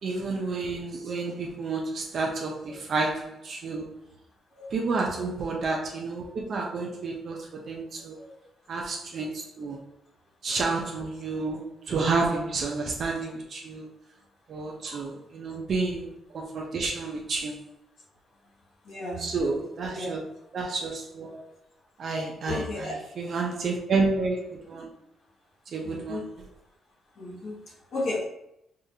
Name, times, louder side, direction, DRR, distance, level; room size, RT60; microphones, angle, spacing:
voice 1, 0.0-3.9 4.7-8.2 8.7-9.8 10.4-13.9 14.5-16.1 16.3-17.6 19.2-20.2 20.5-21.4 22.0-24.9 25.7-26.2, right 3 dB, 50° right, -1 dB, 0.6 m, -30 dB
voice 2, 4.5-4.9 8.2-8.3 10.5-10.7 14.8-15.1 18.8-19.3 19.9-20.1 22.5-23.0 25.8-26.3 27.2-28.2, left 2 dB, 60° left, -3 dB, 1.1 m, -34 dB
4.9 x 2.4 x 2.7 m, 0.83 s
cardioid pair, 145°, 0 cm